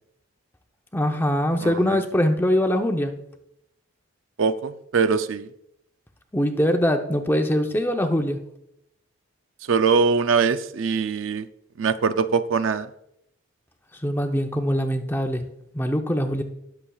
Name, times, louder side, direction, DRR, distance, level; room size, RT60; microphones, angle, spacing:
voice 1, 0.9-3.1 6.3-8.4 14.0-15.5 15.7-16.4, equal, 10° left, 5 dB, 0.7 m, -22 dB
voice 2, 1.6-2.0 4.4-5.5 9.7-11.5 11.8-12.9, right 5 dB, 70° right, 12 dB, 0.4 m, -22 dB
20.0 x 6.9 x 2.3 m, 0.78 s
head